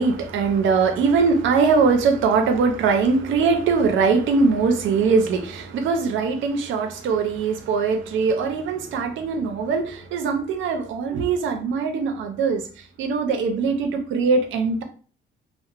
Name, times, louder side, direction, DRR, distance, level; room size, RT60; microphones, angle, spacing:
voice 1, 0.0-12.6 13.0-14.8, right 4 dB, 75° right, 0.5 m, -21 dB
2.7 x 2.0 x 2.4 m
cardioid pair, 90°, 20 cm